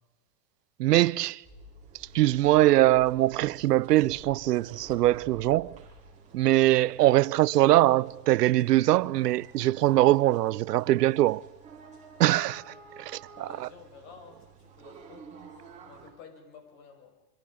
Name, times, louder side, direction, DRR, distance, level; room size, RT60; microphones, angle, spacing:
voice 1, 0.8-1.4 2.1-5.8 6.3-11.4 12.2-12.6 13.0-13.7, right 15 dB, 75° right, 0.7 m, -22 dB
sound 1, 1.4-16.1, right 4 dB, 15° right, 4.9 m, -51 dB
voice 2, 12.3-15.4 15.8-17.1, left 5 dB, 45° left, 6.4 m, -52 dB
26.5 x 25.0 x 5.0 m
supercardioid pair, 155°, 48 cm